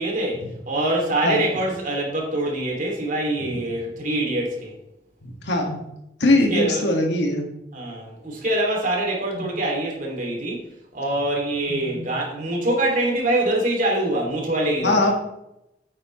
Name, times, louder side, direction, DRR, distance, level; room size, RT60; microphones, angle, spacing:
voice 1, 0.0-4.7 6.5-6.8 7.7-10.6 10.9-15.1, right 1 dB, 50° right, 0 dB, 2.6 m, -24 dB
voice 2, 5.4-5.8 6.2-7.4 9.3-9.5 11.7-12.1 14.8-15.1, left 1 dB, 80° left, 1 dB, 1.9 m, -21 dB
8.8 x 8.6 x 3.2 m, 0.86 s
head